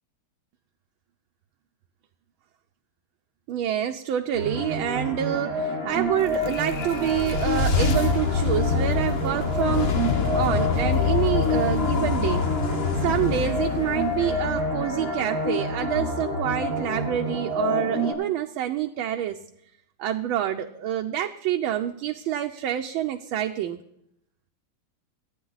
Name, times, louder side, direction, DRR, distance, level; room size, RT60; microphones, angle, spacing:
voice 1, 3.5-10.0 10.3-12.4 13.0-19.4 20.0-23.8, right 11 dB, 75° right, 4 dB, 1.5 m, -27 dB
sound 1, 4.3-18.1, left 1 dB, 65° left, 7.2 m, -28 dB
sound 2, 6.0-15.3, left 6 dB, 50° left, 0.7 m, -26 dB
25.0 x 9.1 x 4.0 m, 0.78 s
omnidirectional pair, 2.4 m